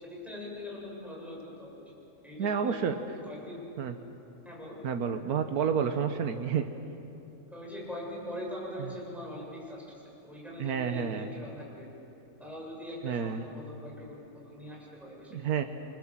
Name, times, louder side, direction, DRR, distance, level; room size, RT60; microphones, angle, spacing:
voice 1, 0.0-1.9 2.2-2.8 3.2-3.6 4.4-4.8 7.5-11.9 12.4-15.7, left 1 dB, ahead, -4 dB, 7.7 m, -42 dB
voice 2, 2.4-3.0 3.8-3.9 4.8-6.6 8.8-8.9 10.6-11.3 13.0-13.4 15.3-15.6, right 7 dB, 90° right, 6 dB, 1.6 m, -30 dB
29.0 x 25.0 x 7.5 m, 2.9 s
omnidirectional pair, 1.5 m